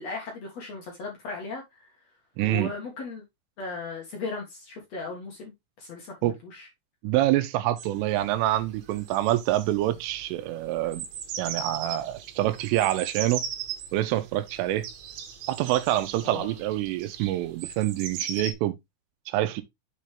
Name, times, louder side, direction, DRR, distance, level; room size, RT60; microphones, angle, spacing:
voice 1, 0.0-1.9 2.4-3.2 3.6-5.5 5.8-6.7 16.2-16.5, left 3 dB, 60° left, 1.7 m, -37 dB
voice 2, 2.4-2.7 6.2-6.3 7.0-11.1 11.4-13.4 13.9-14.9 15.5-18.8 19.3-19.6, right 14 dB, 85° right, 3.2 m, -26 dB
sound 1, 7.8-18.5, right 7 dB, 70° right, 3.4 m, -39 dB
7.6 x 5.4 x 3.3 m
omnidirectional pair, 5.9 m